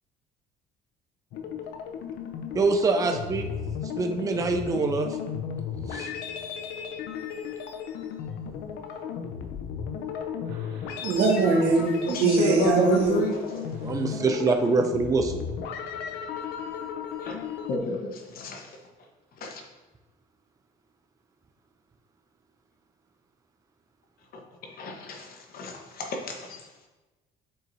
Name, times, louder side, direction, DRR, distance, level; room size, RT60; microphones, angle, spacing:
sound 1, 1.3-17.8, left 7 dB, 85° left, 0.6 m, -35 dB
voice 1, 2.5-3.5 4.0-5.1 5.9-6.1 13.8-15.4, right 3 dB, 20° right, 4 dB, 0.5 m, -24 dB
voice 2, 10.9-13.2, right 4 dB, 80° right, -2 dB, 1.7 m, -22 dB
voice 3, 12.0-13.4 17.2-17.4 17.7-18.8 19.3-19.6 24.3-26.9, left 2 dB, 60° left, 2 dB, 1.1 m, -31 dB
7.6 x 4.6 x 2.7 m, 1.2 s
cardioid pair, 110°, 17 cm